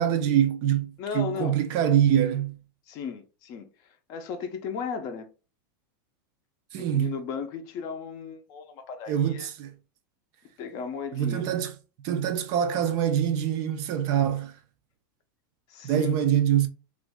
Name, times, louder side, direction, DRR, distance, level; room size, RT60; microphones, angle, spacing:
voice 1, 0.0-2.5 6.7-7.1 9.1-9.7 11.1-11.7 12.0-14.5 15.8-16.7, right 10 dB, 35° right, 0.4 m, -24 dB
voice 2, 1.0-1.6 2.9-5.3 6.8-9.5 10.6-11.5 15.7-16.1, left 6 dB, 35° left, 0.5 m, -35 dB
3.0 x 2.4 x 3.5 m
supercardioid pair, 165°, 12 cm